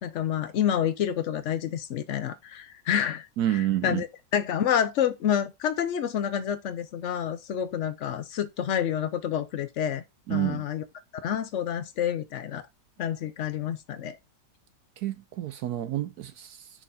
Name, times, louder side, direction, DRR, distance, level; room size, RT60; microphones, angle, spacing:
voice 1, 0.0-4.1 4.3-10.0 10.3-10.8 11.2-12.7 13.0-14.2, left 9 dB, 70° left, 0.7 m, -28 dB
voice 2, 3.4-4.0 10.3-10.7 15.0-16.8, right 13 dB, 70° right, 1.0 m, -29 dB
5.9 x 4.8 x 4.1 m
omnidirectional pair, 1.9 m